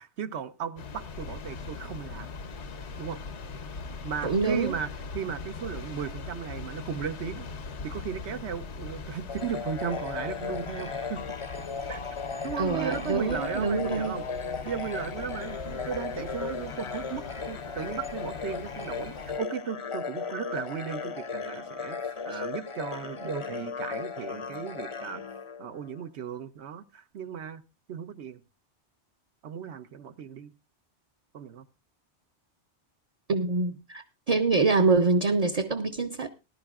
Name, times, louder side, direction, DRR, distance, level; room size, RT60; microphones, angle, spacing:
voice 1, 0.0-2.3 3.0-3.2 4.0-7.5 7.8-11.4 11.9-12.0 12.4-14.2 14.6-25.2 25.6-27.6 27.9-28.4 29.4-30.5 31.3-31.6, right 7 dB, 75° right, 1.1 m, -36 dB
sound 1, 0.8-19.4, left 4 dB, 85° left, 1.2 m, -41 dB
voice 2, 4.2-4.7 12.6-14.2 22.3-22.4 33.3-36.3, right 4 dB, 40° right, 0.7 m, -25 dB
sound 2, 9.3-26.0, left 5 dB, 35° left, 0.6 m, -36 dB
19.5 x 11.0 x 2.4 m
omnidirectional pair, 1.1 m